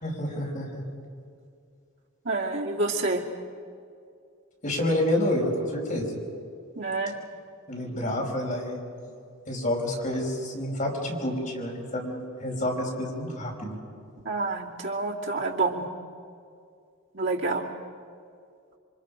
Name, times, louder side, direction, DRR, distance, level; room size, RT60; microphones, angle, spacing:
voice 1, 0.0-0.8 4.6-6.1 7.7-8.8 9.5-13.8, left 1 dB, 40° left, -2 dB, 5.3 m, -29 dB
voice 2, 2.2-3.2 6.8-7.2 7.9-8.0 14.2-15.9 17.1-17.7, right 3 dB, 65° right, -1 dB, 2.6 m, -28 dB
28.0 x 25.0 x 5.3 m, 2.4 s
head